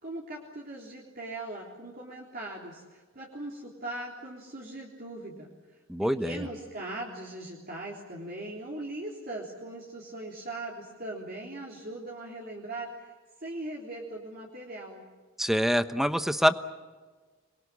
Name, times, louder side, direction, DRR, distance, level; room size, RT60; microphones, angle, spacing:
voice 1, 0.0-5.5 6.0-13.1 13.4-15.0, right 2 dB, 45° right, -2 dB, 3.5 m, -40 dB
voice 2, 5.9-6.4 15.4-16.5, equal, ahead, 10 dB, 1.0 m, -25 dB
27.0 x 22.0 x 8.6 m, 1.4 s
head